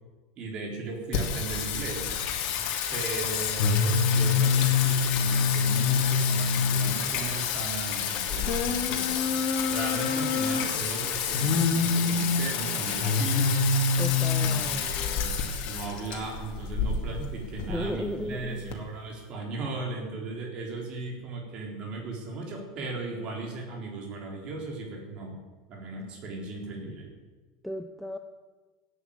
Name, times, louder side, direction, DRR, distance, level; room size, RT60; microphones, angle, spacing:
voice 1, 0.4-2.1 2.9-13.7 14.3-15.3 15.6-25.4 25.7-27.1, right 3 dB, 35° right, 0 dB, 3.8 m, -36 dB
Singing, 1.1-18.7, left 5 dB, 45° left, 2.4 m, -26 dB
voice 2, 14.0-14.9 17.2-17.3 17.7-18.7 27.6-28.2, equal, ahead, 6 dB, 0.6 m, -35 dB
16.0 x 9.2 x 8.7 m, 1.3 s
supercardioid pair, 160°, 3 cm